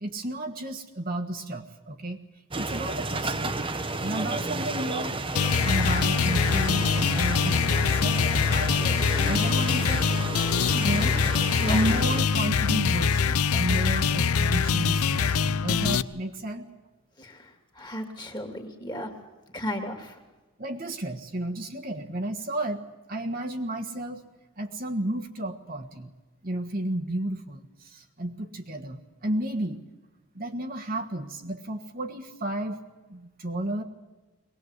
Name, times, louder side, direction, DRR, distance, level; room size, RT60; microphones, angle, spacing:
voice 1, 0.0-2.2 2.6-3.6 4.0-5.1 5.6-10.1 10.8-11.1 11.6-16.7 20.6-24.2 24.6-26.1 26.4-29.8 30.3-32.8 33.1-33.8, right 1 dB, 40° right, 3 dB, 1.4 m, -32 dB
sound 1, 2.5-12.2, right 2 dB, 25° right, 1.1 m, -32 dB
sound 2, 5.4-16.0, left 6 dB, 85° left, 0.6 m, -24 dB
voice 2, 10.7-11.1 11.6-11.8 17.2-19.1 19.5-20.2, equal, 20° left, 5 dB, 2.5 m, -35 dB
23.0 x 19.0 x 8.2 m, 1.2 s
head